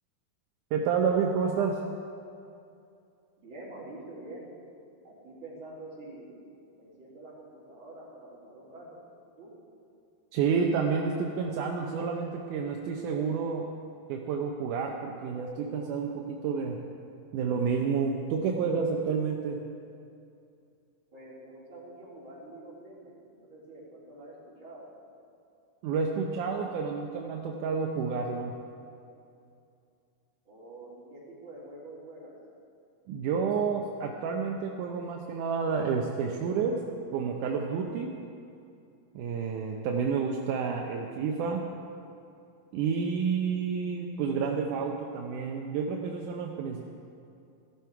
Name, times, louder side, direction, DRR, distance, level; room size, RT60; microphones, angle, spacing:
voice 1, 0.7-1.8 10.3-13.7 14.1-16.8 17.3-19.7 25.8-28.5 33.1-36.8 37.1-38.2 39.2-41.7 42.7-46.8, right 5 dB, 75° right, 1 dB, 2.0 m, -29 dB
voice 2, 3.4-4.5 5.0-6.3 6.8-9.0 9.4-9.5 21.1-24.9 30.5-32.4, right 2 dB, 30° right, -7 dB, 4.0 m, -46 dB
17.0 x 12.5 x 4.7 m, 2.5 s
omnidirectional pair, 4.4 m